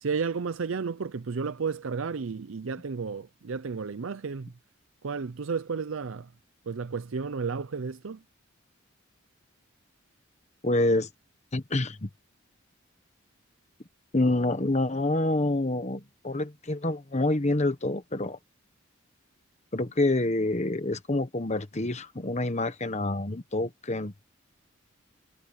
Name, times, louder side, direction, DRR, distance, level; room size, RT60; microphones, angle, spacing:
voice 1, 0.0-4.5 5.0-6.3 6.7-8.2, right 5 dB, 70° right, 0.5 m, -32 dB
voice 2, 10.6-11.1 11.5-12.1 14.1-18.4 19.7-24.1, left 2 dB, 35° left, 1.2 m, -27 dB
head